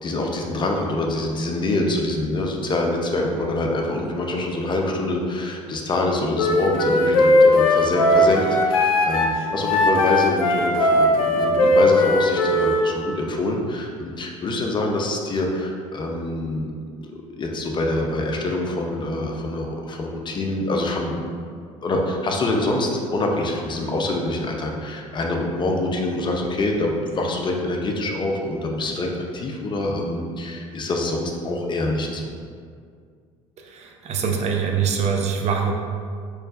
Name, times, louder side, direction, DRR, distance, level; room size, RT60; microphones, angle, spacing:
voice 1, 0.0-16.7 17.0-21.4 21.8-32.3, left 2 dB, 25° left, 1 dB, 0.6 m, -25 dB
Wind instrument woodwind instrument, 6.3-12.9, left 1 dB, 80° left, 0.4 m, -18 dB
voice 2, 33.6-35.7, right 6 dB, 40° right, 2 dB, 0.6 m, -24 dB
4.3 x 3.1 x 2.4 m, 2.1 s
figure-of-eight pair, 60°, 17 cm